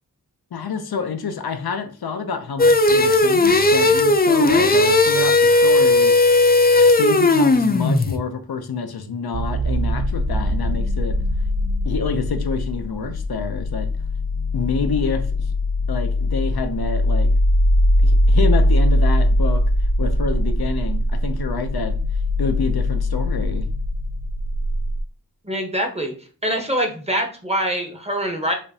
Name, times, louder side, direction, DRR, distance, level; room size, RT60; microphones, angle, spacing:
voice 1, 0.5-6.1 6.8-11.2 11.9-13.9 14.5-15.5 15.9-17.3 18.0-19.6 20.0-21.9 22.4-23.6, left 5 dB, 80° left, 8 dB, 0.6 m, -27 dB
sound 1, 2.6-8.2, left 2 dB, 25° left, 0.4 m, -16 dB
sound 2, 9.3-25.0, left 1 dB, 70° right, 0.5 m, -21 dB
voice 2, 25.4-26.1 26.4-28.5, right 1 dB, 15° right, 3 dB, 0.9 m, -24 dB
4.9 x 2.5 x 2.7 m, 0.38 s
wide cardioid pair, 55°, 37 cm